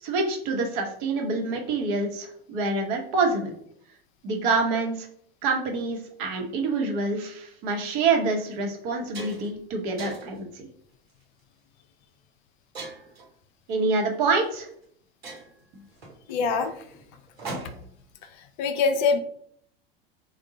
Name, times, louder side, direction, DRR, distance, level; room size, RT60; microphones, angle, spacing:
voice 1, 0.0-3.5 4.2-5.1 5.4-10.7 13.7-14.7, right 3 dB, 55° right, 2 dB, 1.0 m, -26 dB
sound 1, 7.7-7.9 8.4-8.5 8.8-9.6 10.0-10.4 11.1-11.4 12.7-13.3 14.4-14.5 14.8-14.9 15.2-18.0, right 2 dB, 85° right, 1.2 m, -40 dB
voice 2, 16.3-16.7 18.6-19.2, left 5 dB, 50° left, 7 dB, 0.5 m, -23 dB
3.5 x 2.3 x 3.8 m, 0.65 s
figure-of-eight pair, 80°, 30 cm